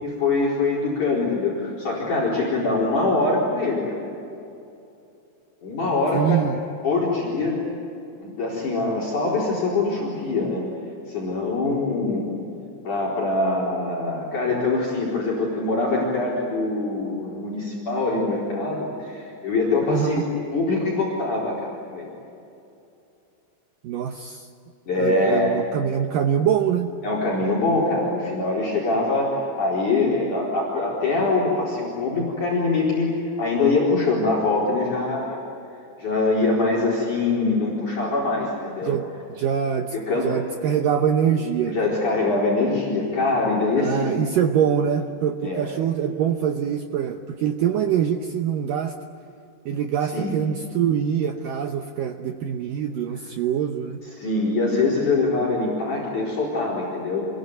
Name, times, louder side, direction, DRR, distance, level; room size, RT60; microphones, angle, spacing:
voice 1, 0.0-4.0 5.6-6.4 6.8-7.6 8.2-10.6 11.1-12.3 12.8-20.2 20.5-22.1 24.9-25.5 27.0-35.4 36.0-38.9 39.9-40.3 41.7-44.3 45.4-45.7 50.1-50.3 54.2-57.3, left 3 dB, 45° left, -2 dB, 5.5 m, -23 dB
voice 2, 6.1-6.6 19.9-20.2 23.8-24.5 25.0-26.9 38.8-39.1 39.4-39.9 40.2-41.9 43.8-48.9 49.7-54.0, right 8 dB, 80° right, 5 dB, 2.0 m, -24 dB
28.0 x 22.5 x 9.6 m, 2.7 s
omnidirectional pair, 5.3 m